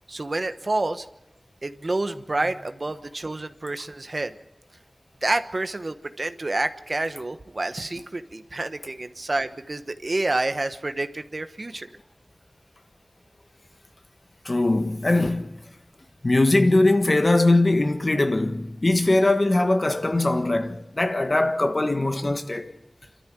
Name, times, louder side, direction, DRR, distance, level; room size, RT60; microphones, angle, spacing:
voice 1, 0.1-1.1 1.6-4.3 5.2-11.9, right 2 dB, 55° right, 1.1 m, -28 dB
voice 2, 14.5-15.5 16.2-22.7, left 2 dB, 50° left, 1.6 m, -21 dB
27.5 x 13.0 x 7.6 m
wide cardioid pair, 40°, 0 cm